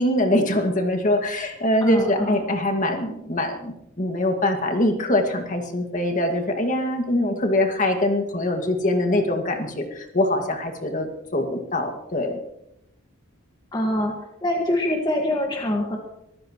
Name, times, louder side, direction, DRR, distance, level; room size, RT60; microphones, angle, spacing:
voice 1, 0.0-12.4, left 1 dB, 40° left, 4 dB, 2.0 m, -23 dB
voice 2, 1.8-2.4 13.7-14.1 14.4-16.0, left 1 dB, 20° left, 0 dB, 1.7 m, -24 dB
24.5 x 14.5 x 3.1 m, 0.82 s
head